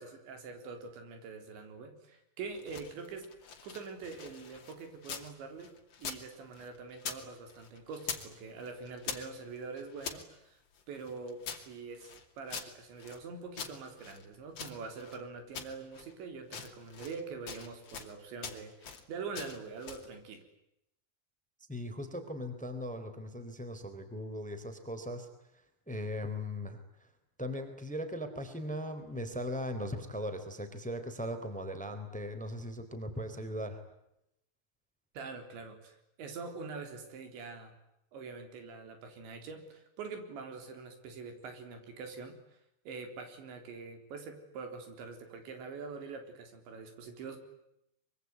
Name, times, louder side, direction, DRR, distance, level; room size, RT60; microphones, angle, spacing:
voice 1, 0.0-3.3 3.6-5.7 6.0-10.6 10.9-20.4 35.1-37.8 38.1-42.4 42.9-47.4, right 4 dB, 90° right, 6 dB, 6.1 m, -44 dB
sound 1, 2.4-5.3 5.6-7.2 7.5-8.3 8.6-10.2 10.7-13.2 13.5-15.2 15.5-16.1 16.4-17.2 17.5-18.1 18.4-19.0 19.3-20.1, left 6 dB, 40° left, 3.2 m, -44 dB
voice 2, 21.7-25.3 25.9-27.1 27.4-33.8, equal, ahead, 9 dB, 3.0 m, -39 dB
24.5 x 24.0 x 9.5 m, 0.82 s
omnidirectional pair, 5.0 m